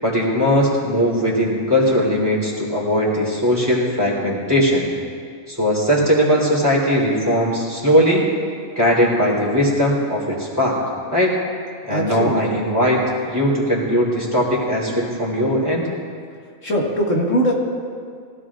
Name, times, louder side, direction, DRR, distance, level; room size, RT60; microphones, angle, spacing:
voice 1, 0.0-4.9 5.5-8.2 8.8-10.8 11.1-11.3 11.9-15.9, equal, 15° right, -5 dB, 3.8 m, -19 dB
voice 2, 11.9-12.5 16.6-17.5, equal, 85° left, -4 dB, 2.6 m, -21 dB
22.5 x 17.0 x 2.5 m, 2.2 s
omnidirectional pair, 1.3 m